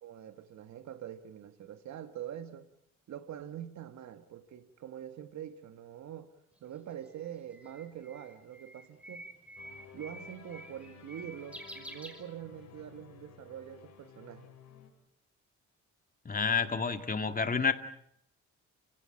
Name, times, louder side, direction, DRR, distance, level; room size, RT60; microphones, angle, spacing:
voice 1, 0.0-2.7 3.1-6.3 6.6-9.3 9.9-14.5, right 10 dB, 65° right, 1.9 m, -44 dB
Bird, 6.6-12.8, right 1 dB, 5° right, 5.8 m, -49 dB
sound 1, 9.6-14.9, left 7 dB, 65° left, 5.0 m, -54 dB
voice 2, 16.3-17.7, left 5 dB, 30° left, 2.2 m, -29 dB
30.0 x 17.5 x 8.7 m
cardioid pair, 90°, 30 cm